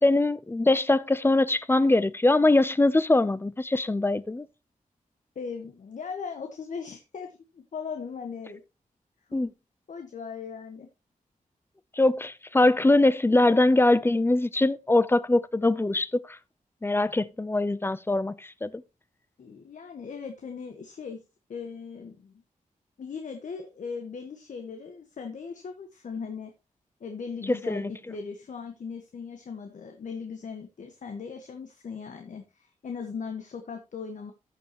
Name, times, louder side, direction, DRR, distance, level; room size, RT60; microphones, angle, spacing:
voice 1, 0.0-4.5 9.3-9.5 12.0-16.4 16.8-18.7 27.5-27.9, left 2 dB, 15° left, 0.5 m, -22 dB
voice 2, 5.3-8.6 9.3-9.4 9.9-10.9 19.4-21.2 21.5-22.3 23.0-26.5 27.0-34.3, left 5 dB, 60° left, 1.3 m, -38 dB
14.0 x 6.9 x 3.0 m
wide cardioid pair, 115°, 14 cm